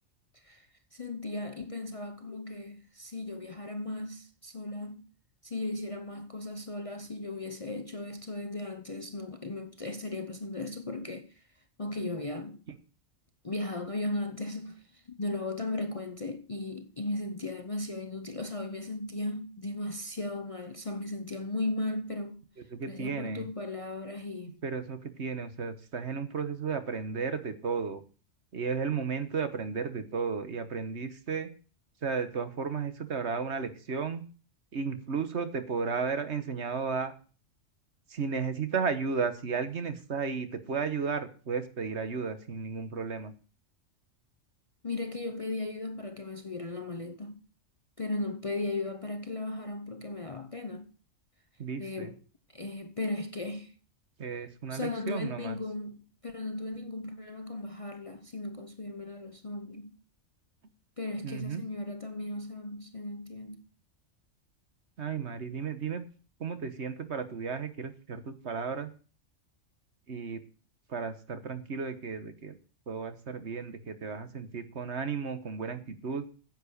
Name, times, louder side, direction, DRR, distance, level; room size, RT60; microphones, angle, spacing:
voice 1, 0.9-5.0 5.4-11.3 11.8-12.6 13.4-22.4 22.9-24.6 44.8-47.4 48.0-50.9 51.8-52.2 52.5-53.7 54.7-59.9 61.0-63.6, left 2 dB, 30° left, 0.7 m, -36 dB
voice 2, 22.7-23.5 24.6-28.0 28.5-31.5 32.0-34.2 34.7-37.1 38.1-43.3 51.6-52.1 54.2-55.6 61.2-61.6 65.0-66.0 66.4-68.9 70.1-70.4 70.9-72.6 72.9-76.3, right 5 dB, 60° right, 1.5 m, -34 dB
10.0 x 8.0 x 6.4 m
omnidirectional pair, 1.3 m